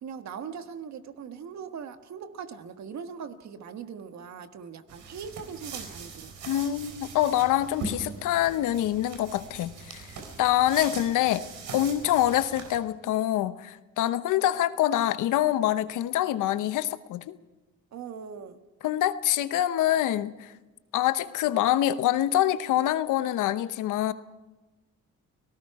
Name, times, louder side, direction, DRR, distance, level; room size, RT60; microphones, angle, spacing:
voice 1, 0.0-6.3 17.9-18.6, right 7 dB, 65° right, 8 dB, 1.5 m, -40 dB
sound 1, 4.9-12.8, right 4 dB, 85° right, 4.1 m, -41 dB
voice 2, 6.5-11.5 11.7-17.4 18.8-20.5 20.9-24.1, left 13 dB, 85° left, 14 dB, 0.9 m, -25 dB
29.5 x 18.5 x 4.8 m, 1.1 s
cardioid pair, 90°, 30 cm